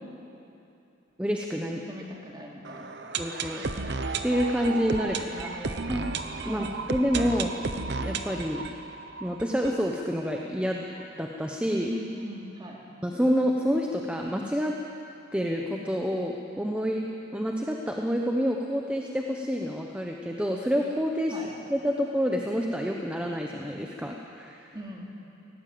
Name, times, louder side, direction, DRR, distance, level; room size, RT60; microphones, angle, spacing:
voice 1, 1.2-1.8 3.2-3.6 4.2-5.5 5.9-6.0 6.4-7.5 8.0-8.6 9.2-11.9 13.0-14.8 15.3-17.0 17.3-21.3 21.7-24.7, equal, 5° right, 1 dB, 0.9 m, -28 dB
voice 2, 1.7-2.9 5.0-6.0 6.4-6.7 11.9-12.8 21.3-21.5 24.7-25.1, equal, 20° right, -2 dB, 2.9 m, -40 dB
sound 1, 2.6-10.4 10.7-10.8 11.0-11.1 11.6-11.7, right 4 dB, 60° right, 1.0 m, -34 dB
19.0 x 17.5 x 7.8 m, 2.8 s
head